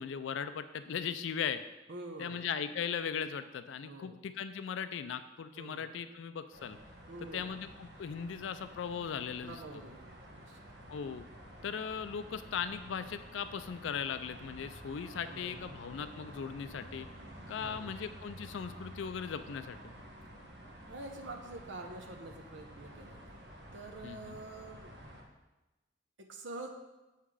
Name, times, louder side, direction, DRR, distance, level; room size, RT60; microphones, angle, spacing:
voice 1, 0.0-1.6 2.2-6.8 7.3-9.6 10.9-11.3 11.6-17.1 17.5-19.9 24.0-24.4, left 7 dB, 75° left, 11 dB, 0.4 m, -38 dB
voice 2, 1.9-2.5 3.8-4.3 5.5-6.0 7.1-7.6 9.4-11.0 15.3-15.8 17.6-18.1 20.9-23.4 23.7-24.9 26.2-26.7, right 2 dB, 75° right, 2 dB, 0.8 m, -47 dB
sound 1, 6.5-25.2, right 1 dB, 60° right, 1.3 m, -51 dB
7.3 x 5.7 x 4.8 m, 1.1 s
head